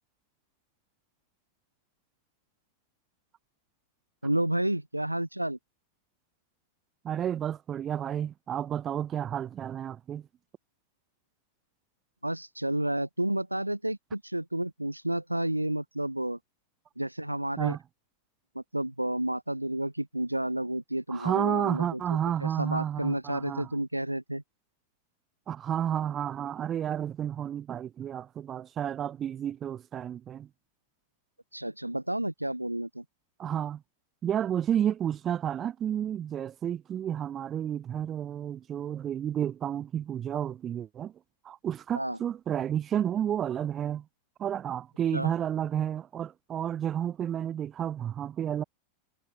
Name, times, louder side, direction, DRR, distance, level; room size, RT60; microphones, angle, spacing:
voice 1, 4.2-5.6 12.2-16.4 17.0-17.8 18.6-22.0 22.4-24.4 31.5-33.0 41.9-42.2 45.1-45.3, right 1 dB, 85° right, 1.7 m, -31 dB
voice 2, 7.0-10.2 17.6-17.8 21.1-23.7 25.5-30.5 33.4-33.8 34.2-41.1 41.4-44.0 44.4-48.6, right 9 dB, 25° right, 1.7 m, -31 dB
figure-of-eight pair, 90°, 0 cm